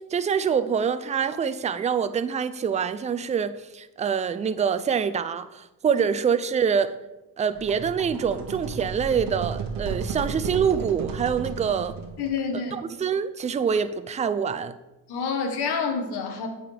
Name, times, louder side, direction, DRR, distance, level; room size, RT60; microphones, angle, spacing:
voice 1, 0.1-6.9 7.4-11.9 12.7-14.7, right 7 dB, 20° right, 0.3 m, -25 dB
sound 1, 7.5-12.4, right 5 dB, 60° right, 1.0 m, -33 dB
voice 2, 12.2-12.7 15.1-16.5, left 5 dB, 75° left, 1.2 m, -28 dB
8.8 x 4.0 x 3.3 m
cardioid pair, 80°, 40 cm